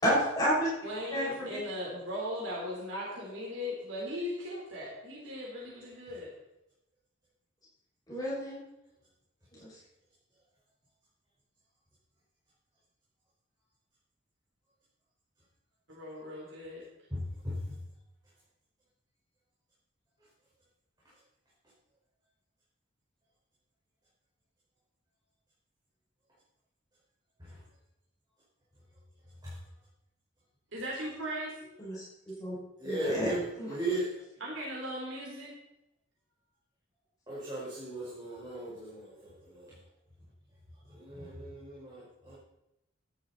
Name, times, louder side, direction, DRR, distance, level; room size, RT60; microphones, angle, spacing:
voice 1, 0.0-0.7 1.1-1.2 8.1-8.6 31.8-32.0 32.4-32.5 32.8-33.3 33.6-33.7, equal, 20° left, -8 dB, 6.1 m, -29 dB
voice 2, 0.8-6.3 15.9-16.8 30.7-31.7 34.4-35.5, equal, 85° right, -4 dB, 3.7 m, -38 dB
voice 3, 17.1-17.7 27.4-27.6 29.4-29.6 32.8-34.2 37.3-39.7 40.9-42.4, right 1 dB, 20° right, -9 dB, 4.8 m, -37 dB
14.0 x 11.5 x 4.1 m, 0.88 s
head